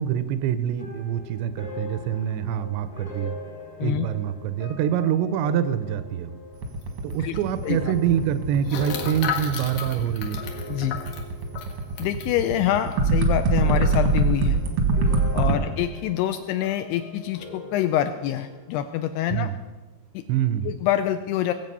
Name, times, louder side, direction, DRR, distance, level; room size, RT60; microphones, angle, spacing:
voice 1, 0.0-3.4 3.8-6.4 7.0-10.4 15.4-15.6 19.3-19.6 20.3-20.8, right 10 dB, 80° right, 12 dB, 2.7 m, -25 dB
sound 1, 0.8-12.2 12.5-13.1 13.6-18.9, left 3 dB, 40° left, 0.4 m, -42 dB
sound 2, 6.5-15.5, right 3 dB, 65° right, 1.4 m, -24 dB
sound 3, 6.8-6.9 7.1-7.2 8.6-12.3 12.9-13.0 13.3-13.6, left 7 dB, 65° left, 2.3 m, -33 dB
voice 2, 12.0-14.6 15.3-19.5 20.1-20.2 20.6-21.5, left 11 dB, 85° left, 9 dB, 2.4 m, -26 dB
20.0 x 7.8 x 5.5 m, 1.2 s
omnidirectional pair, 5.1 m